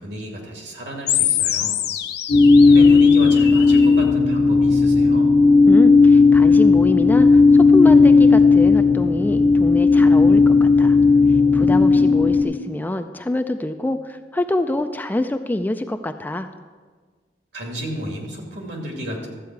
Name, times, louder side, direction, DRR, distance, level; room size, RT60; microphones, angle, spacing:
voice 1, 0.0-1.8 2.6-5.3 17.5-19.3, equal, 70° right, 0 dB, 2.4 m, -32 dB
sound 1, 1.1-4.1, left 11 dB, 60° left, 0.7 m, -25 dB
sound 2, 2.3-12.4, left 4 dB, 80° left, 1.4 m, -13 dB
voice 2, 5.7-11.0 11.5-16.5, left 1 dB, 10° left, 8 dB, 0.3 m, -25 dB
13.0 x 8.4 x 4.6 m, 1.5 s
head